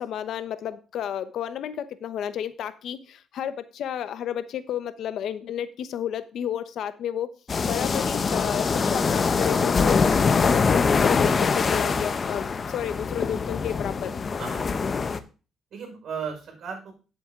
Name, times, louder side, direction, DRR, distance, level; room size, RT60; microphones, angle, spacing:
voice 1, 0.0-7.3 7.6-14.2, left 10 dB, 75° left, 12 dB, 0.9 m, -31 dB
sound 1, 7.5-15.2, left 5 dB, 40° left, 0.8 m, -23 dB
voice 2, 14.4-15.1 15.7-16.9, right 6 dB, 65° right, 3 dB, 5.3 m, -36 dB
9.3 x 7.6 x 3.7 m, 0.33 s
cardioid pair, 90°, 0 cm